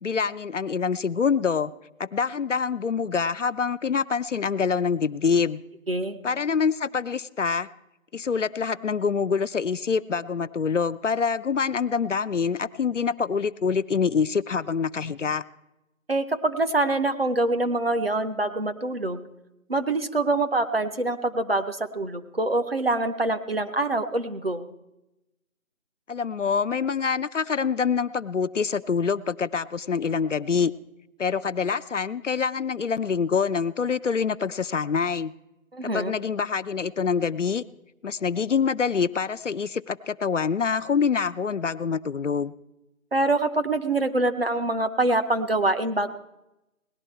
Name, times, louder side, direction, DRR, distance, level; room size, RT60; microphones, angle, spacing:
voice 1, 0.0-1.7 2.0-5.6 6.2-7.7 8.1-15.4 26.1-30.7 31.2-35.3 35.8-37.6 38.0-42.5, left 6 dB, 60° left, 13 dB, 0.5 m, -25 dB
voice 2, 5.9-6.2 16.1-19.3 19.7-24.7 35.7-36.1 43.1-46.1, right 2 dB, 45° right, 8 dB, 0.8 m, -25 dB
18.5 x 11.0 x 4.4 m, 0.94 s
figure-of-eight pair, 175°, 42 cm